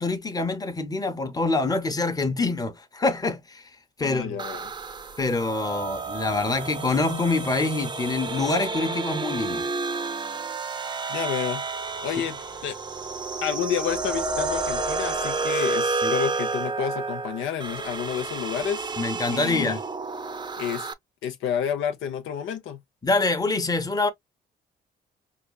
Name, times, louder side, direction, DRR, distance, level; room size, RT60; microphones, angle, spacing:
voice 1, 0.0-3.6 4.0-4.4 5.2-9.7 16.0-16.1 19.0-19.8 23.0-24.1, left 3 dB, 20° left, 0.9 m, -25 dB
voice 2, 4.0-4.7 11.1-11.6 12.0-12.4 12.6-12.8 13.4-18.9 19.3-19.8 20.6-20.9 21.2-22.8, left 8 dB, 85° left, 0.8 m, -29 dB
sound 1, 4.4-20.9, right 3 dB, 20° right, 0.6 m, -30 dB
5.0 x 2.4 x 2.3 m
cardioid pair, 90°, 20 cm